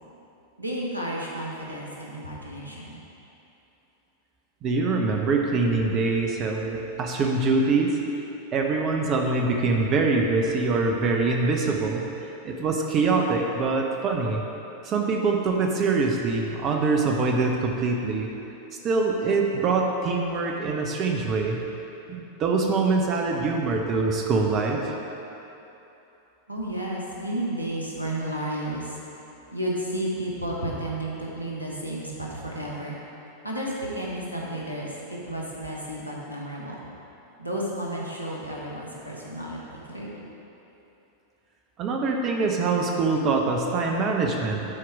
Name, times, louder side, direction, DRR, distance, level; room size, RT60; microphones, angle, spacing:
voice 1, 0.6-3.0 26.5-28.9 29.5-33.0 33.4-36.8 37.4-39.6 39.9-40.2, right 1 dB, 85° right, -4 dB, 1.3 m, -32 dB
voice 2, 4.6-8.0 8.5-14.4 14.8-18.3 18.8-21.6 22.1-25.0 41.8-44.7, right 3 dB, 35° right, 1 dB, 0.7 m, -24 dB
11.0 x 4.6 x 4.7 m, 3.0 s
figure-of-eight pair, 90°, 0 cm